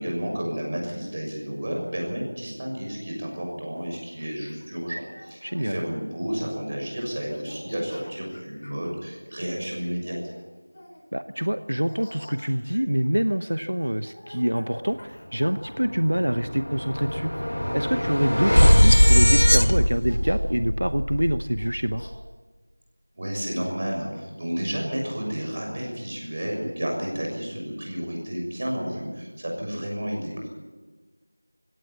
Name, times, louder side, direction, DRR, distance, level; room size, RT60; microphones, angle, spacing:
voice 1, 0.0-10.2 23.1-30.5, equal, 30° right, 0 dB, 6.6 m, -31 dB
Laughter, 3.3-5.7 6.3-6.7 7.1-8.8 9.6-11.1 11.7-16.5 17.0-17.9 18.6-18.7 19.0-19.6 20.0-20.6 21.6-22.1, left 1 dB, 40° left, 6.8 m, -46 dB
voice 2, 5.4-5.8 11.1-17.3 17.7-22.0, equal, 80° right, 11 dB, 0.8 m, -26 dB
sound 1, 15.4-15.5 15.8-22.1, equal, 85° left, 1.5 m, -20 dB
20.0 x 17.0 x 8.6 m, 1.3 s
figure-of-eight pair, 175°, 0 cm